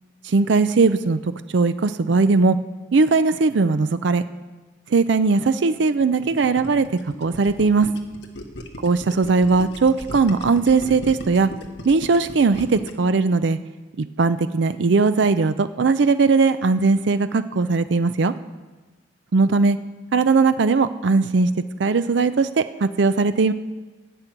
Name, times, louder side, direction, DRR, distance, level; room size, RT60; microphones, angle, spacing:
voice 1, 0.2-2.6 2.9-4.2 4.9-6.9 7.2-7.9 8.8-11.5 11.9-13.6 14.0-18.3 19.3-19.8 20.1-21.5 21.8-23.5, right 4 dB, 70° right, 11 dB, 0.5 m, -19 dB
Gurgling, 6.0-13.1, left 1 dB, 65° left, 1.2 m, -37 dB
12.5 x 6.0 x 9.2 m, 1.2 s
head